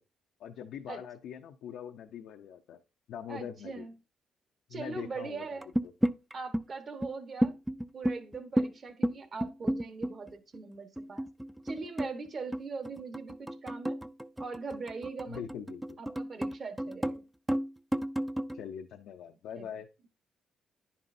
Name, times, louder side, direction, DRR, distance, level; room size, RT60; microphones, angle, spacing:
voice 1, 0.4-2.8 3.1-3.9 4.7-5.9 15.3-16.0 18.5-19.9, left 8 dB, 80° left, 0.5 m, -43 dB
voice 2, 3.3-3.9 4.7-5.7 6.3-7.5 7.9-11.3 11.6-14.0 14.4-15.4 16.0-17.2 19.5-19.7, right 4 dB, 45° right, 1.1 m, -41 dB
sound 1, 5.6-6.6 7.0-7.1 7.4-8.7 9.0-10.6 11.0-17.2 17.5-18.6, equal, 5° right, 0.3 m, -32 dB
10.0 x 5.4 x 2.6 m
cardioid pair, 90°, 0 cm